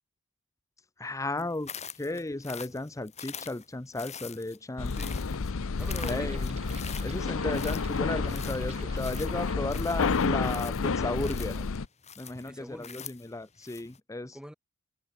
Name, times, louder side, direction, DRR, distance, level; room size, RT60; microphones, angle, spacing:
voice 1, 1.0-4.9 6.0-6.6 7.0-11.6 12.2-14.4, left 2 dB, 15° left, 0.7 m, -34 dB
sound 1, 1.4-14.0, left 7 dB, 30° left, 3.3 m, -45 dB
sound 2, 4.8-11.9, left 4 dB, 65° left, 0.7 m, -30 dB
voice 2, 4.9-5.3 5.8-6.5 7.1-7.6 12.5-13.1 14.2-14.5, equal, 5° right, 3.7 m, -45 dB
sound 3, 5.8-11.7, right 3 dB, 30° right, 6.1 m, -49 dB
head